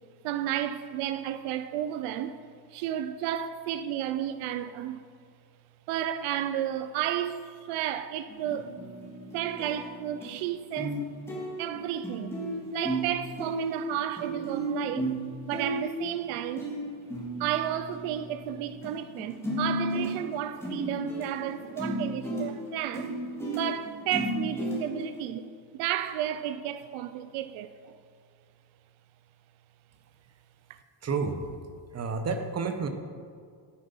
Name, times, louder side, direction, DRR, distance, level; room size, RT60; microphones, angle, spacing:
voice 1, 0.2-2.4 2.7-5.0 5.9-8.8 9.3-11.0 11.6-12.4 12.7-15.1 15.5-16.7 17.4-23.1 23.5-28.0 30.7-30.8, right 11 dB, 90° right, 0.7 m, -32 dB
sound 1, 8.3-10.4 10.8-11.0 11.3-18.9 19.2-25.3, right 1 dB, 5° left, 3.1 m, -34 dB
voice 2, 31.0-31.4 31.9-32.9, right 4 dB, 30° right, 1.1 m, -30 dB
12.5 x 9.8 x 5.6 m
cardioid pair, 145°, 49 cm